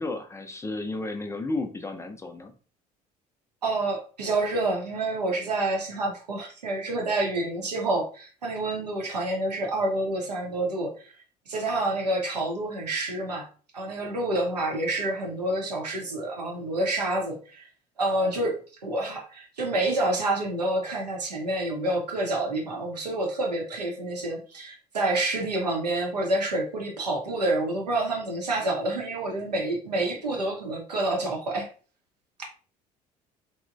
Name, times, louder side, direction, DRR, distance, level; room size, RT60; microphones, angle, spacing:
voice 1, 0.0-2.5, left 2 dB, 15° left, 6 dB, 0.4 m, -33 dB
voice 2, 3.6-11.1 11.5-13.5 13.7-17.7 18.0-18.5 18.8-31.7, right 2 dB, 85° right, 0 dB, 0.6 m, -28 dB
2.9 x 2.0 x 2.4 m, 0.38 s
figure-of-eight pair, 60°, 20 cm